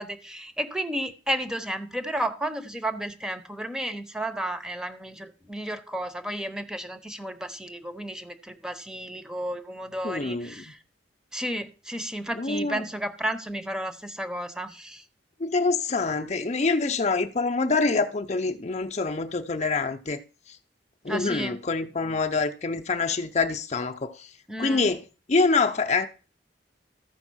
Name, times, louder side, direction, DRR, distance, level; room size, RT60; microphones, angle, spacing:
voice 1, 0.0-10.8 11.3-15.0 21.1-21.6 24.5-24.8, right 1 dB, 5° right, 0.8 m, -32 dB
voice 2, 10.0-10.7 12.4-12.8 15.4-20.2 21.0-24.3 24.6-25.0 25.3-26.1, left 3 dB, 40° left, 0.7 m, -26 dB
13.5 x 5.0 x 6.2 m
head